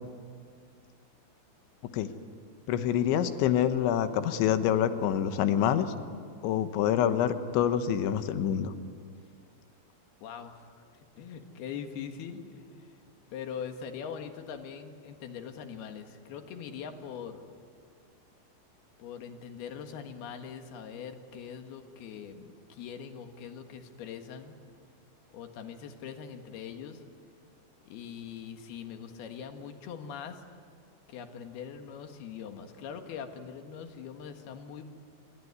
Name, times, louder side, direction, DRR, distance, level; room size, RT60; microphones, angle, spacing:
voice 1, 2.7-5.9 6.4-8.7, left 9 dB, 90° left, 10 dB, 3.5 m, -26 dB
voice 2, 10.2-10.8 11.2-12.9 13.3-17.5 19.0-24.6 25.3-27.0 27.9-30.4 31.1-34.9, left 7 dB, 65° left, 6 dB, 3.3 m, -42 dB
27.0 x 22.5 x 9.6 m, 2.1 s
omnidirectional pair, 5.2 m